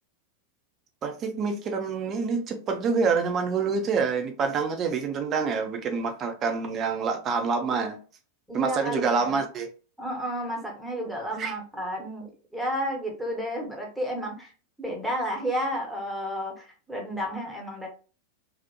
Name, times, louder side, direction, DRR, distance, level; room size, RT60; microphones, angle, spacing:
voice 1, 1.0-8.0 8.5-9.7 11.4-11.5, right 5 dB, 30° right, 0.5 m, -27 dB
voice 2, 8.5-9.4 10.0-14.5 14.8-17.9, equal, ahead, 0.8 m, -32 dB
2.9 x 2.1 x 2.2 m
figure-of-eight pair, 90°, 0 cm